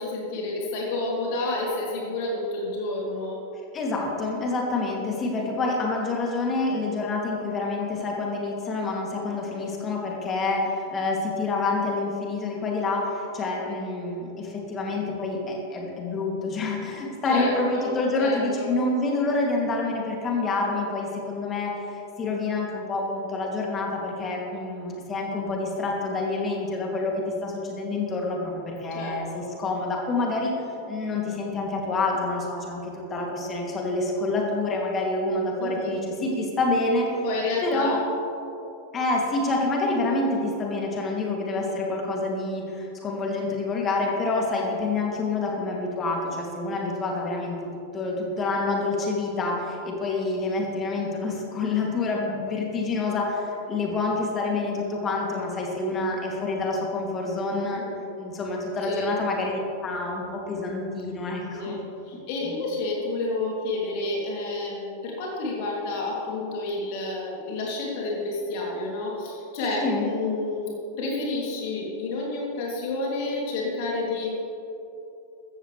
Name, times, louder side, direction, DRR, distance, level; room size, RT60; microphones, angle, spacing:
voice 1, 0.0-3.4 17.2-18.7 28.9-29.5 35.6-35.9 36.2-36.4 37.2-38.0 57.8-58.1 58.9-59.1 61.5-70.7 71.0-74.4, left 2 dB, 50° left, -3 dB, 2.9 m, -30 dB
voice 2, 3.7-30.5 30.9-37.1 37.6-38.0 38.9-47.7 47.9-57.8 58.2-61.8 62.4-62.5 69.8-70.1, left 3 dB, 25° left, -1 dB, 2.6 m, -27 dB
15.0 x 14.5 x 3.4 m, 2.9 s
figure-of-eight pair, 90°, 0 cm